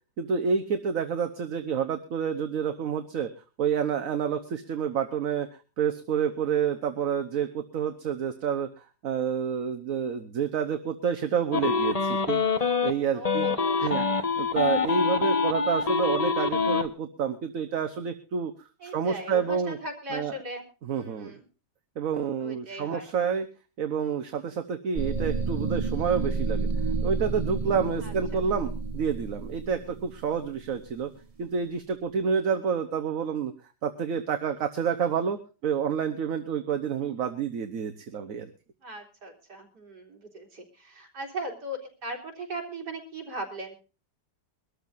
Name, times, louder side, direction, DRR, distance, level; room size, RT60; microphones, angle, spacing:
voice 1, 0.2-3.3 3.6-5.5 5.8-13.5 13.8-14.0 14.4-19.8 20.1-20.3 20.8-21.3 22.0-23.5 23.8-26.7 27.0-31.1 31.4-33.5 33.8-38.5, right 7 dB, 55° right, 7 dB, 1.4 m, -29 dB
sound 1, 11.5-12.9 13.2-16.9, left 5 dB, 25° left, 1.1 m, -25 dB
voice 2, 13.1-14.1 18.8-20.6 20.9-21.4 22.4-23.1 28.0-28.1 38.8-43.7, right 1 dB, 85° right, 0 dB, 3.9 m, -38 dB
sound 2, 25.0-31.0, right 3 dB, 30° right, 0.8 m, -30 dB
23.0 x 13.0 x 2.6 m, 0.33 s
omnidirectional pair, 1.8 m